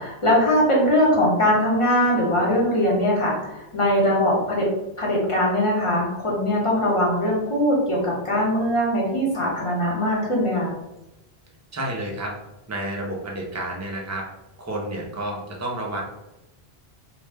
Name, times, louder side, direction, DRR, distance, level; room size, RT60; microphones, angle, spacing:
voice 1, 0.0-4.7 5.0-10.7, equal, 35° left, -3 dB, 0.8 m, -21 dB
voice 2, 11.7-12.3 12.7-14.3 14.6-16.0, right 1 dB, 25° right, -2 dB, 0.3 m, -30 dB
2.6 x 2.1 x 3.3 m, 0.94 s
omnidirectional pair, 1.1 m